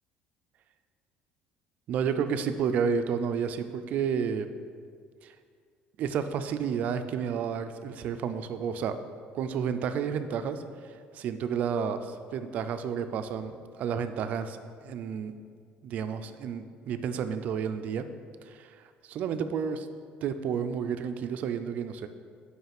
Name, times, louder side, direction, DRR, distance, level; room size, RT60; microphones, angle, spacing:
voice 1, 1.9-4.5 5.2-5.3 6.0-9.0 9.3-10.6 11.1-15.3 15.8-18.1 18.5-18.7 19.1-19.9 20.2-22.1, right 7 dB, 45° right, 9 dB, 0.4 m, -31 dB
5.5 x 4.8 x 5.9 m, 2.1 s
cardioid pair, 175°, 4 cm